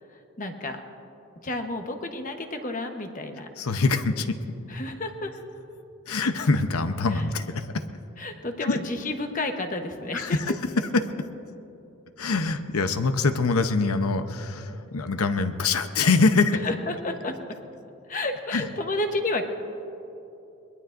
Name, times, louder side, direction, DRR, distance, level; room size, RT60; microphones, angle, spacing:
voice 1, 0.4-0.8 1.4-3.5 4.7-5.3 7.1-7.2 8.2-10.4 16.6-17.3 18.1-19.4, left 2 dB, 35° left, 5 dB, 1.0 m, -31 dB
voice 2, 3.6-4.4 6.1-7.8 8.6-8.8 10.1-11.1 12.2-16.6 18.5-18.7, left 3 dB, 85° left, 9 dB, 0.8 m, -24 dB
22.0 x 21.0 x 2.6 m, 2.9 s
head